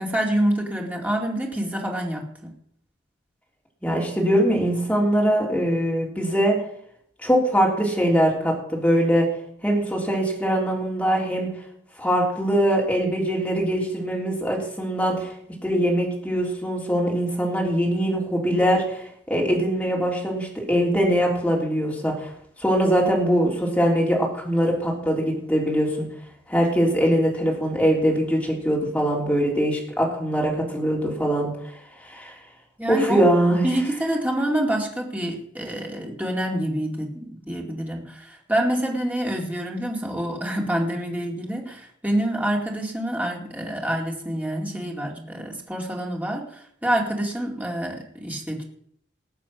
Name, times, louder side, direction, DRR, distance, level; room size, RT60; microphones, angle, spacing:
voice 1, 0.0-2.5 32.8-33.3 33.6-48.6, right 1 dB, 10° right, 0 dB, 2.3 m, -27 dB
voice 2, 3.8-6.6 7.2-9.3 9.6-11.5 12.0-15.3 15.6-22.3 22.6-26.1 26.5-31.5 32.0-32.3 32.9-33.7, equal, 5° left, -2 dB, 3.5 m, -22 dB
19.5 x 7.1 x 6.0 m, 0.68 s
head